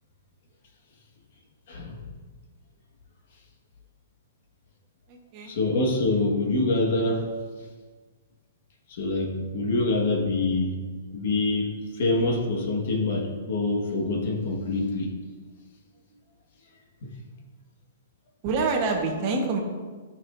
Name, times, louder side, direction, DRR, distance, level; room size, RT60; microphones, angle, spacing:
voice 1, 1.7-2.1 5.4-7.3 8.9-10.8 11.1-15.1 17.0-17.1, left 2 dB, 55° left, 1 dB, 1.6 m, -25 dB
voice 2, 5.1-5.5 18.4-19.6, right 4 dB, 30° right, 1 dB, 1.2 m, -26 dB
13.0 x 6.2 x 2.6 m, 1.4 s
hypercardioid pair, 165°, 0 cm